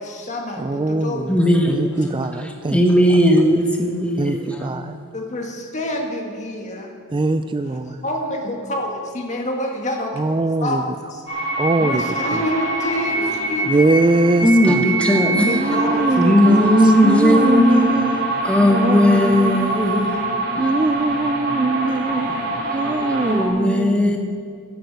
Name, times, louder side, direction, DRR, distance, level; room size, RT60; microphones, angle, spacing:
voice 1, 0.0-1.2 4.3-4.4 5.1-6.9 8.0-10.2 10.6-11.2 11.8-13.8 15.0-16.1 17.3-17.6, left 1 dB, 35° left, 1.8 m, -27 dB
voice 2, 0.6-1.4 1.7-2.8 4.2-5.0 7.1-8.0 10.2-10.8 11.6-12.4 13.7-14.9 15.5-19.7 20.6-22.3 22.7-24.1, right 2 dB, 20° right, 0.3 m, -22 dB
voice 3, 1.3-1.8 2.0-2.2 2.7-4.7 14.4-15.6 16.2-17.9 18.3-20.1 20.4-20.7 22.8-24.2, left 1 dB, 5° left, 1.4 m, -17 dB
sound 1, 11.3-23.5, right 2 dB, 55° right, 3.4 m, -24 dB
12.5 x 8.8 x 8.1 m
head